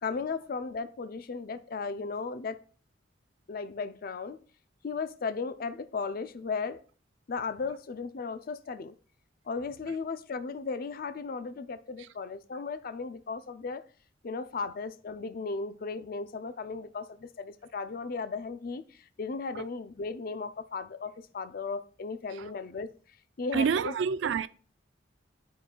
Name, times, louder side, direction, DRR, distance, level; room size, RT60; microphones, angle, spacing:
voice 1, 0.0-2.6 3.5-4.4 4.8-6.8 7.3-8.9 9.5-13.8 14.2-18.8 19.2-22.9 23.4-23.9, left 4 dB, 50° left, 0.4 m, -36 dB
voice 2, 23.5-24.5, right 6 dB, 75° right, 0.3 m, -27 dB
11.5 x 4.0 x 2.3 m
head